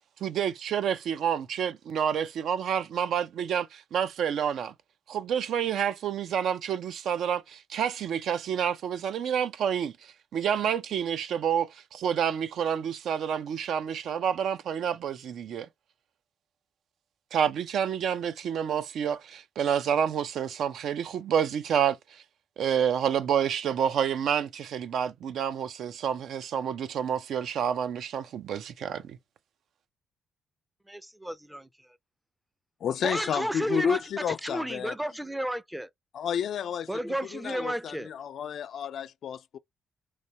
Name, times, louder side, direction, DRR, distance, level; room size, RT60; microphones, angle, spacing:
voice 1, 0.2-4.7 5.1-15.7 17.3-22.2 22.6-29.2, right 8 dB, 70° right, 0.4 m, -29 dB
voice 2, 30.9-31.7 33.0-35.9 36.9-38.1, right 1 dB, 5° right, 0.4 m, -32 dB
voice 3, 32.8-34.9 36.1-37.0 37.3-39.6, left 8 dB, 65° left, 0.3 m, -31 dB
3.2 x 2.7 x 2.7 m
cardioid pair, 90°, 0 cm